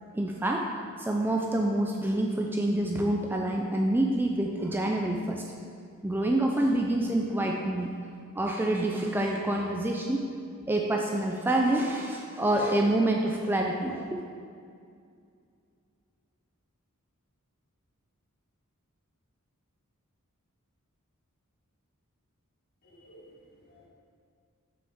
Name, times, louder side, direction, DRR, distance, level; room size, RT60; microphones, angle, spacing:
voice 1, 0.1-0.7 1.0-5.4 6.0-7.9 8.4-10.2 10.7-14.2, right 1 dB, 10° right, 0 dB, 0.3 m, -27 dB
voice 2, 22.9-23.9, equal, 45° left, -4 dB, 1.5 m, -54 dB
7.1 x 5.9 x 3.6 m, 2.3 s
head